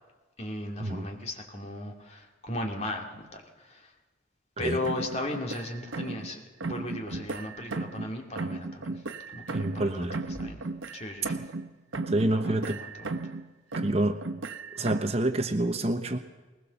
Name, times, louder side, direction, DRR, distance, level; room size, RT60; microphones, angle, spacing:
voice 1, 0.4-3.9 4.6-9.0 9.3-10.6 10.9-11.5 12.3-13.2, left 1 dB, 35° left, 2 dB, 2.4 m, -37 dB
sound 1, 4.8-6.3 6.6-8.1 8.4-11.7 11.9-13.4 13.7-15.2, right 3 dB, 90° right, 1.1 m, -35 dB
voice 2, 9.5-10.2 12.1-12.8 13.8-14.2 14.7-16.2, right 1 dB, 30° right, 8 dB, 0.9 m, -27 dB
20.5 x 20.0 x 6.9 m, 1.2 s
head